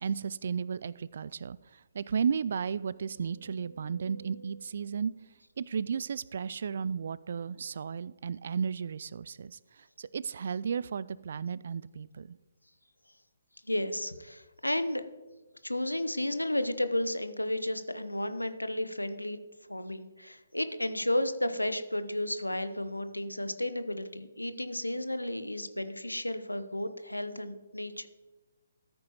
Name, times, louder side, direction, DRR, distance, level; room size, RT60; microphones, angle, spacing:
voice 1, 0.0-5.1 5.6-12.4, right 6 dB, 50° right, 19 dB, 0.3 m, -34 dB
sound 1, 0.8-0.9 1.3-1.4 1.9-6.2 6.8-6.9, right 1 dB, 80° right, 2.2 m, -56 dB
voice 2, 13.6-15.0 15.6-19.4 19.7-28.1, left 1 dB, 90° left, 11 dB, 0.8 m, -33 dB
14.0 x 8.9 x 3.0 m, 1.2 s
figure-of-eight pair, 135°, 0 cm